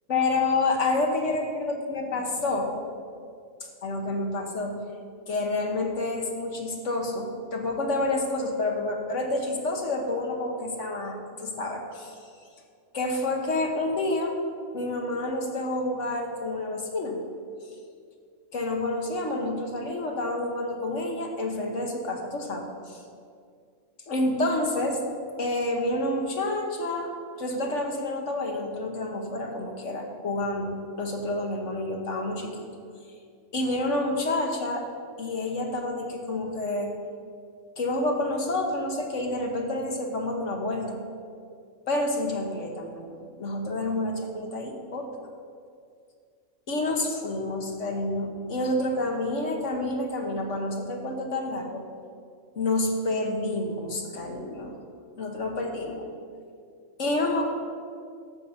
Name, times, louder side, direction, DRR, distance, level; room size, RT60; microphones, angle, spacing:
voice 1, 0.1-2.8 3.8-4.8 5.3-12.2 12.9-14.3 14.7-17.2 18.5-23.0 24.1-25.0 25.4-27.1 27.4-32.7 33.5-34.9 35.2-36.9 37.8-41.0 41.9-45.1 46.7-51.8 52.6-54.8 55.2-56.1 57.0-57.5, left 2 dB, 60° left, 2 dB, 1.6 m, -29 dB
12.0 x 7.4 x 5.8 m, 2.2 s
omnidirectional pair, 1.5 m